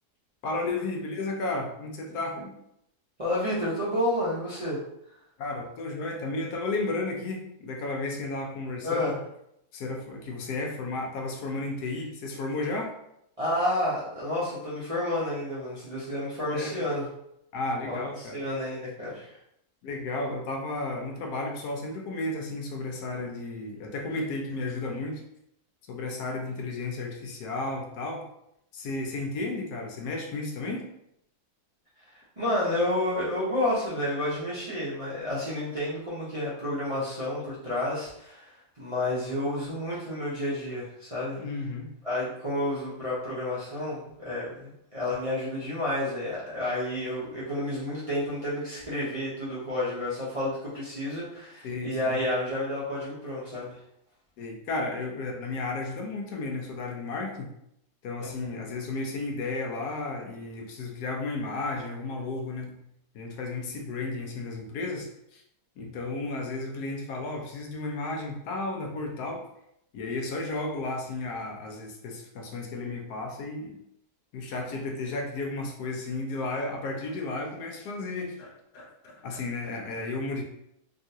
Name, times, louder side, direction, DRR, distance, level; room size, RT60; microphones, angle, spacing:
voice 1, 0.4-2.5 5.4-9.1 9.7-12.9 16.5-16.8 17.5-18.4 19.8-25.2 25.9-28.2 28.7-30.9 41.4-41.9 51.6-52.2 54.4-57.5 58.0-62.8 63.1-65.4 65.8-69.4 69.9-73.8 74.3-80.4, left 2 dB, 85° left, 1 dB, 1.2 m, -33 dB
voice 2, 3.2-4.8 8.8-9.1 13.4-17.0 17.9-19.4 32.1-41.4 42.0-53.8 58.2-58.5, left 1 dB, 35° right, -9 dB, 0.6 m, -30 dB
3.5 x 2.4 x 2.7 m, 0.77 s
omnidirectional pair, 1.7 m